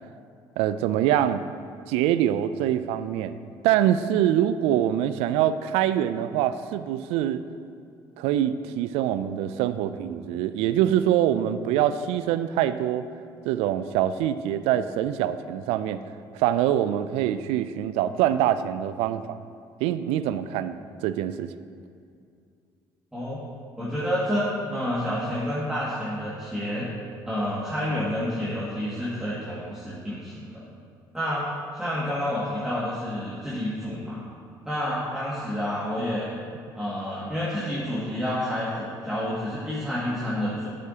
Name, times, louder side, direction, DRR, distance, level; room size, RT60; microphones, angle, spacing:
voice 1, 0.6-1.4 1.9-3.4 3.6-7.4 8.2-13.1 13.5-16.0 16.3-19.4 19.8-21.5, right 11 dB, 70° right, 13 dB, 0.4 m, -24 dB
voice 2, 23.8-26.9 27.3-30.6 31.1-31.4 31.7-34.2 34.7-36.3 36.8-40.8, equal, 5° right, -10 dB, 2.0 m, -29 dB
8.6 x 8.3 x 2.8 m, 2.4 s
hypercardioid pair, 60°, 11 cm